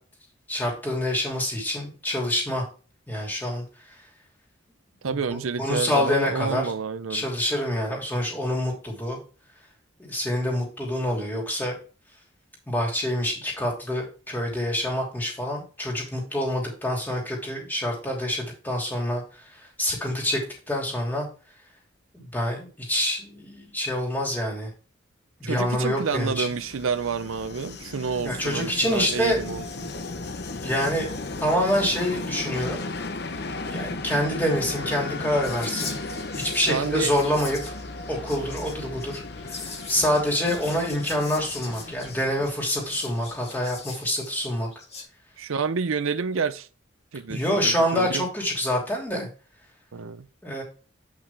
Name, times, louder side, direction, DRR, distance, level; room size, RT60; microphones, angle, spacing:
voice 1, 0.5-2.6 3.1-3.6 5.1-5.2 5.6-6.7 7.1-9.2 10.0-11.8 12.7-19.2 19.8-20.4 20.7-21.3 22.1-24.7 25.4-26.5 28.2-29.4 30.6-32.8 33.7-36.0 36.4-37.7 38.1-39.6 39.9-44.7 47.3-49.3 50.4-50.6, left 1 dB, 10° left, 2.9 m, -26 dB
voice 2, 5.0-7.3 25.4-29.9 36.7-37.1 45.4-46.7 47.1-48.3 49.9-50.3, right 5 dB, 90° right, 0.6 m, -29 dB
Train, 25.9-43.5, left 3 dB, 55° left, 0.8 m, -36 dB
Whispering, 35.4-45.0, left 4 dB, 30° left, 2.0 m, -41 dB
8.9 x 5.7 x 3.5 m
head